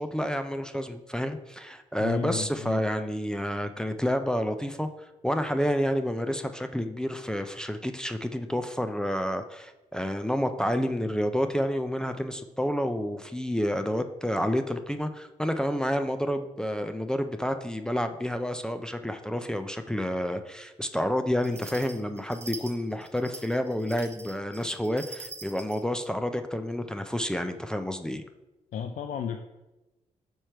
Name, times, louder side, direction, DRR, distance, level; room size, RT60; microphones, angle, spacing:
voice 1, 0.0-28.2, equal, 5° left, 7 dB, 0.4 m, -29 dB
voice 2, 2.0-2.8 28.7-29.4, left 7 dB, 70° left, 6 dB, 0.4 m, -33 dB
sound 1, 21.4-25.8, right 2 dB, 20° right, 1.0 m, -44 dB
4.9 x 4.5 x 4.5 m, 1.0 s
cardioid pair, 95°, 13 cm